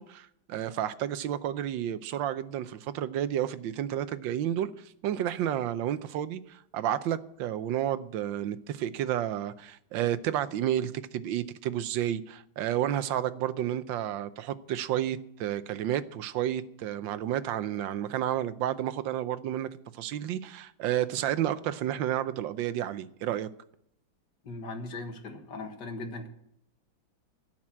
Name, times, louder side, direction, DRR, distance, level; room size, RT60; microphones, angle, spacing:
voice 1, 0.0-23.5, right 11 dB, 80° right, 1.4 m, -31 dB
voice 2, 24.4-26.3, left 2 dB, 65° left, 2.3 m, -39 dB
16.5 x 6.0 x 8.7 m
omnidirectional pair, 2.1 m